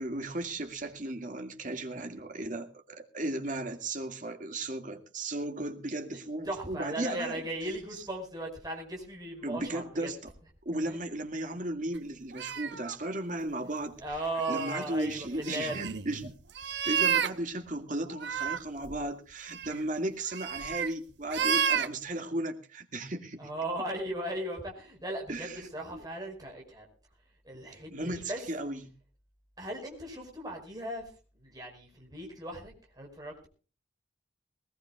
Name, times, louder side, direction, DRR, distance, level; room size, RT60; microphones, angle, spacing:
voice 1, 0.0-7.4 9.4-10.3 10.7-14.0 14.5-16.3 16.9-23.5 25.3-26.0 27.9-28.9, right 1 dB, 45° right, 6 dB, 2.1 m, -35 dB
voice 2, 6.5-10.1 10.8-11.0 14.0-15.7 23.4-26.9 27.4-28.4 29.6-31.0 31.4-33.5, right 1 dB, 20° right, -1 dB, 5.2 m, -37 dB
sound 1, 12.3-12.9 14.1-17.3 18.1-18.6 18.8-19.0 19.5-19.8 20.3-20.9 21.3-21.9, right 8 dB, 65° right, 1.0 m, -31 dB
20.0 x 20.0 x 2.4 m, 0.37 s
head